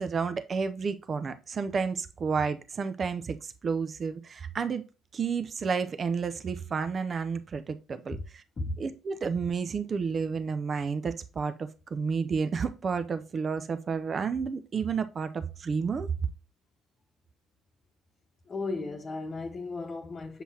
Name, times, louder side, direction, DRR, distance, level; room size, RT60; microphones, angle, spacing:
voice 1, 0.0-4.8 5.1-8.4 8.8-16.1, right 5 dB, 40° right, 0.6 m, -31 dB
voice 2, 18.5-20.4, left 3 dB, 35° left, 1.0 m, -35 dB
7.5 x 5.5 x 2.8 m
hypercardioid pair, 55°, 0 cm